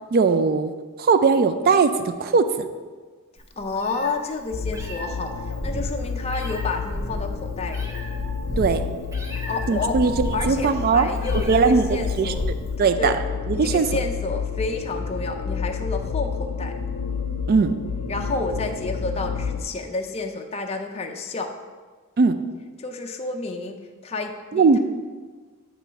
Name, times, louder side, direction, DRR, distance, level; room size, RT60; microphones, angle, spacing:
voice 1, 0.1-0.7 1.0-2.7 8.6-8.8 9.7-11.1 11.5-11.9 12.2-12.3 12.8-13.1 13.5-13.9 17.5-17.7 22.2-22.4 24.5-24.8, right 5 dB, 45° right, 10 dB, 0.3 m, -19 dB
Meow, 3.4-12.8, equal, 15° right, 0.7 m, -33 dB
voice 2, 3.6-7.9 9.2-10.0 10.3-12.5 13.0-13.2 13.5-16.7 18.1-21.5 22.8-24.8, left 3 dB, 30° left, 3 dB, 0.5 m, -30 dB
sound 1, 4.5-19.6, left 6 dB, 75° left, 0.6 m, -30 dB
8.5 x 3.0 x 5.6 m, 1.4 s
head